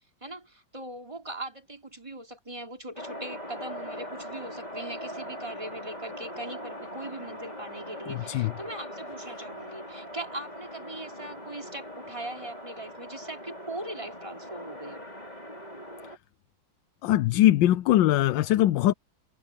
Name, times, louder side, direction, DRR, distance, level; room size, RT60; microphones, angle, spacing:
voice 1, 0.2-15.1, right 1 dB, 15° right, 3.7 m, -40 dB
sound 1, 3.0-16.2, equal, 20° left, 4.8 m, -41 dB
voice 2, 8.1-8.5 17.0-18.9, left 14 dB, 80° left, 1.3 m, -21 dB
omnidirectional pair, 2.0 m